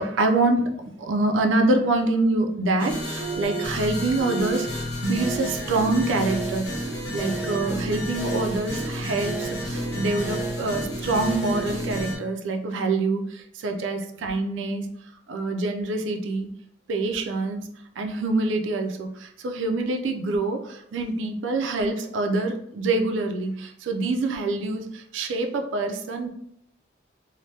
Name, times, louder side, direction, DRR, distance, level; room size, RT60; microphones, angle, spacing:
voice 1, 0.0-14.9 15.3-16.5 16.9-26.3, right 2 dB, 90° right, 4 dB, 0.4 m, -26 dB
sound 1, 2.8-12.1, right 1 dB, 65° left, 1.0 m, -30 dB
3.2 x 2.1 x 2.7 m, 0.70 s
head